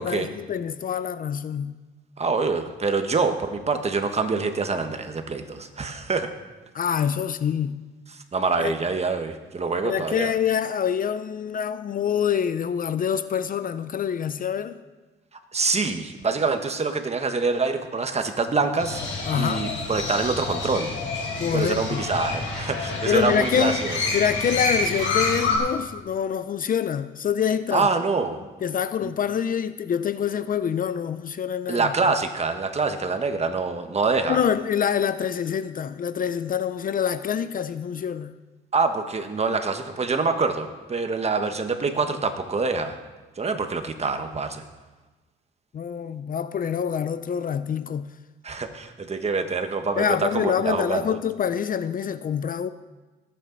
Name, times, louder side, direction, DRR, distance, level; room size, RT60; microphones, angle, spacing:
voice 1, 0.0-1.7 6.7-7.8 8.5-8.7 9.8-14.8 19.3-19.7 21.4-22.0 23.0-23.8 24.1-27.9 28.6-32.1 34.3-38.3 45.7-48.1 50.0-52.7, left 8 dB, 45° left, 0.5 m, -26 dB
voice 2, 2.2-6.3 8.3-10.3 15.5-19.0 19.3-20.9 21.5-24.0 27.7-28.4 31.7-34.4 38.7-42.9 43.4-44.6 48.4-50.0 50.3-51.2, right 4 dB, 30° right, 1.3 m, -25 dB
Crow, 18.8-25.6, left 3 dB, 70° left, 4.3 m, -28 dB
18.5 x 8.6 x 4.0 m
cardioid pair, 90°, 20 cm